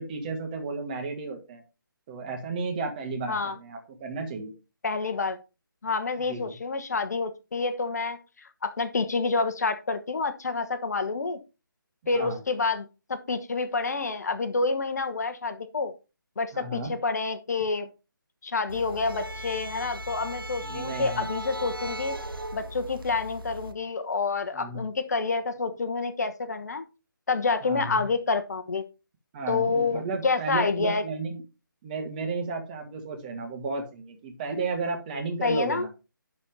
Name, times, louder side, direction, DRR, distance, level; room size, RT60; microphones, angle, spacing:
voice 1, 0.0-1.6 2.1-4.5 6.3-6.5 12.1-12.4 16.5-16.9 20.6-21.3 24.5-24.8 27.6-28.0 29.3-31.4 31.8-35.9, right 3 dB, 25° right, 3 dB, 2.1 m, -33 dB
voice 2, 4.8-5.4 5.8-11.4 12.1-15.9 16.4-17.9 18.4-22.1 22.5-26.8 27.3-28.8 29.5-31.0 35.4-35.9, left 4 dB, 50° left, 9 dB, 1.2 m, -28 dB
sound 1, 18.7-23.7, right 1 dB, 75° right, 1.6 m, -37 dB
11.5 x 4.3 x 5.2 m, 0.30 s
figure-of-eight pair, 155°, 12 cm